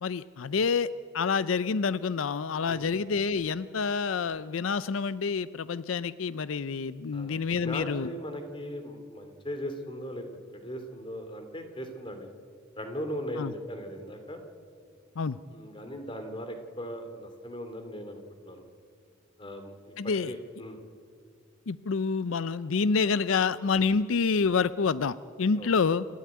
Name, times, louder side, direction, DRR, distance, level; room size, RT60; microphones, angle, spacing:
voice 1, 0.0-8.1 13.4-13.5 15.2-15.4 20.0-20.3 21.7-26.1, left 5 dB, 85° left, 16 dB, 0.5 m, -28 dB
voice 2, 7.6-10.2 10.5-12.3 12.8-14.4 15.5-18.6 19.4-20.8 25.6-25.7, equal, 25° left, 6 dB, 2.6 m, -38 dB
28.5 x 12.5 x 9.5 m, 2.2 s
head